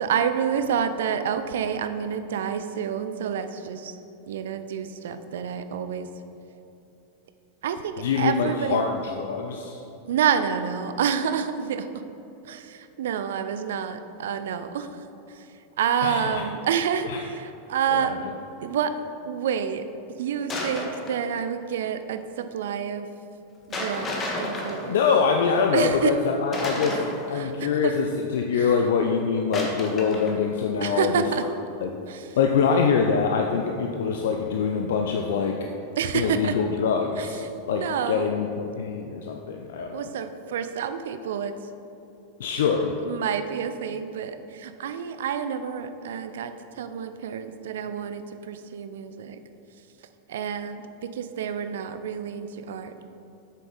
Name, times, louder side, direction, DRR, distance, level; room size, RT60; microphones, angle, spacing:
voice 1, 0.0-4.0 4.3-6.1 7.6-8.8 10.0-11.9 12.4-15.5 15.8-18.1 18.6-18.9 19.2-19.9 20.2-23.1 23.7-25.0 25.7-26.1 27.3-27.9 28.5-28.8 30.8-31.4 32.1-32.3 36.0-36.5 37.2-37.3 37.7-38.3 39.9-41.5 43.0-49.4 50.3-50.8 51.1-52.9, right 8 dB, 65° right, 9 dB, 0.4 m, -28 dB
voice 2, 8.0-9.8 16.0-16.4 17.1-17.2 17.9-18.3 24.9-27.0 27.3-31.5 31.8-31.9 32.4-35.6 36.1-40.0 42.4-42.9, left 5 dB, 60° left, 3 dB, 0.5 m, -24 dB
sound 1, 20.5-21.3 23.7-25.4 26.5-27.5 29.5-30.3, left 1 dB, 25° left, 1.4 m, -31 dB
8.3 x 6.6 x 4.0 m, 2.9 s
figure-of-eight pair, 90°, 0 cm